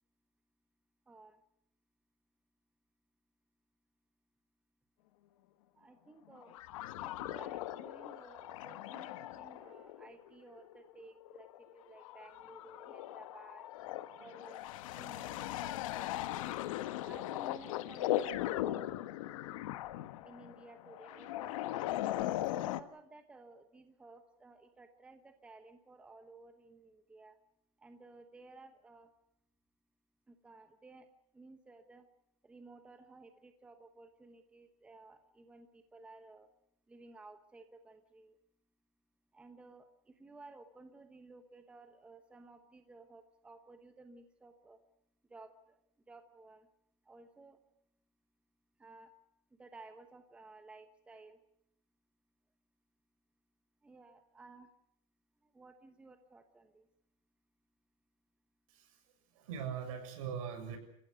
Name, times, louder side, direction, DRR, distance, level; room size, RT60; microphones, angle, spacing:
voice 1, 1.1-1.4 5.7-6.6 7.0-13.7 14.2-14.6 14.9-16.6 17.0-19.0 20.2-22.0 22.6-27.4 27.8-29.1 30.3-31.1 31.3-32.1 32.4-36.5 36.9-38.4 39.3-44.8 45.3-45.8 46.1-46.7 47.0-47.6 48.8-49.1 49.5-51.4 53.8-54.7 55.4-56.9, right 3 dB, 5° right, 7 dB, 1.0 m, -56 dB
sound 1, 6.3-22.8, left 14 dB, 70° left, 1.3 m, -39 dB
voice 2, 58.7-60.8, right 7 dB, 70° right, 6 dB, 6.7 m, -42 dB
28.5 x 16.0 x 8.0 m, 0.77 s
supercardioid pair, 180°, 18 cm